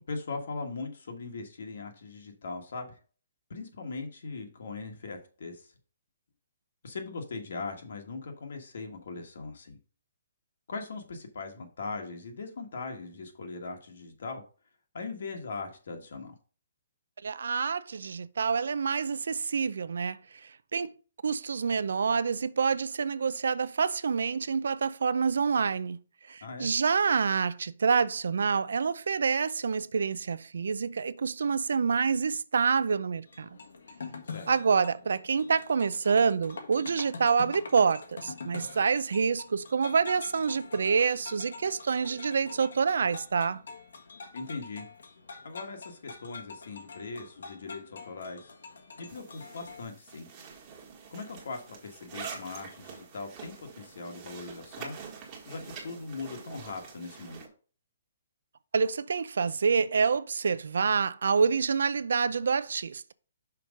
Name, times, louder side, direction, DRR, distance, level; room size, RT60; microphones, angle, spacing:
voice 1, 0.1-3.0 3.5-5.7 6.8-9.8 10.7-14.4 14.9-16.3 26.4-26.7 34.3-34.5 44.3-44.9 45.4-48.5 49.0-50.3 51.1-55.0 55.5-57.4, left 3 dB, 60° left, 1.3 m, -40 dB
voice 2, 17.2-20.2 20.7-20.9 21.2-26.0 26.3-33.5 34.5-43.6 58.7-63.0, right 5 dB, 75° right, 0.5 m, -27 dB
sound 1, 33.3-49.8, left 4 dB, 90° left, 1.5 m, -45 dB
sound 2, 49.1-57.5, right 6 dB, 20° right, 1.4 m, -46 dB
5.9 x 4.6 x 5.0 m
hypercardioid pair, 175°, 0 cm